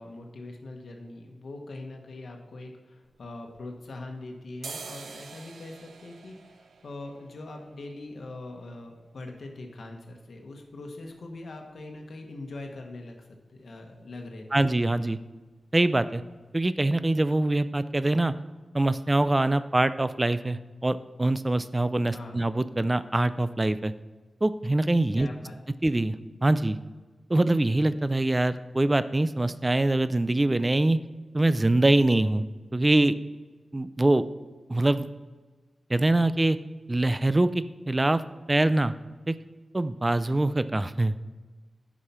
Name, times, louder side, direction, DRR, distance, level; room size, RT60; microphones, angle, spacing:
voice 1, 0.0-14.6 22.1-22.5 25.2-25.6, left 2 dB, 65° left, 2 dB, 1.2 m, -42 dB
sound 1, 3.0-4.1 4.5-12.2 12.5-12.6 12.8-13.4 13.7-13.9 14.2-14.4 14.7-15.4 15.8-15.9 16.4-16.5 16.8-16.9, right 5 dB, 80° right, 0.5 m, -48 dB
voice 2, 14.5-15.2 15.7-16.2 16.5-18.3 18.7-23.9 24.4-25.3 25.8-26.2 26.4-26.8 27.3-31.0 31.3-32.4 32.7-33.1 33.7-34.2 34.7-35.1 35.9-36.6 36.9-38.2 38.5-38.9 39.3-39.4 39.7-41.1, right 2 dB, 20° right, 14 dB, 0.4 m, -24 dB
10.0 x 4.9 x 5.5 m, 1.3 s
wide cardioid pair, 135°, 0 cm